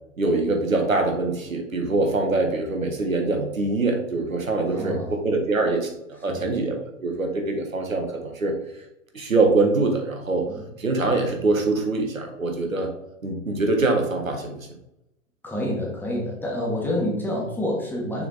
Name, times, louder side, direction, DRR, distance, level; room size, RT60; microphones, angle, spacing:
voice 1, 0.2-8.5 9.1-10.5 10.8-12.9 13.2-14.6, right 3 dB, 85° right, 2 dB, 1.6 m, -24 dB
voice 2, 4.7-5.2 6.3-6.4 10.5-10.6 15.4-18.3, left 1 dB, 5° left, -4 dB, 1.5 m, -28 dB
6.5 x 4.1 x 4.1 m, 0.84 s
figure-of-eight pair, 120°, 39 cm